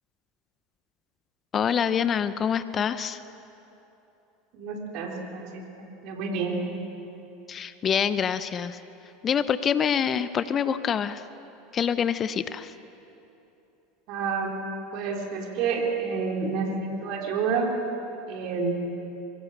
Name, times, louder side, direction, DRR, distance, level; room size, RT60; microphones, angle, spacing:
voice 1, 1.5-3.2 7.5-8.8 9.2-11.2 11.7-12.7, left 7 dB, 30° left, 13 dB, 0.9 m, -26 dB
voice 2, 4.5-6.6 14.1-14.6 14.9-17.7 18.3-18.7, right 5 dB, 50° right, 1 dB, 3.8 m, -29 dB
25.0 x 23.5 x 6.7 m, 3.0 s
figure-of-eight pair, 75°, 0 cm